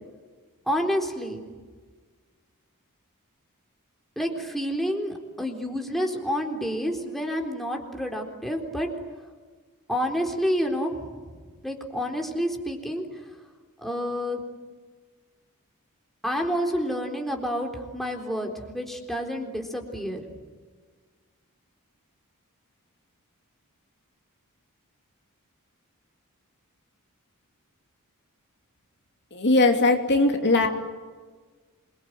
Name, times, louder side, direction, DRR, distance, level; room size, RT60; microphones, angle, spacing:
voice 1, 0.7-1.4 4.2-8.9 9.9-10.9 11.6-13.1 13.8-14.4 16.2-20.2, equal, ahead, 1 dB, 3.8 m, -29 dB
voice 2, 29.3-30.7, left 2 dB, 50° left, 3 dB, 2.9 m, -20 dB
27.5 x 23.0 x 9.4 m, 1.4 s
head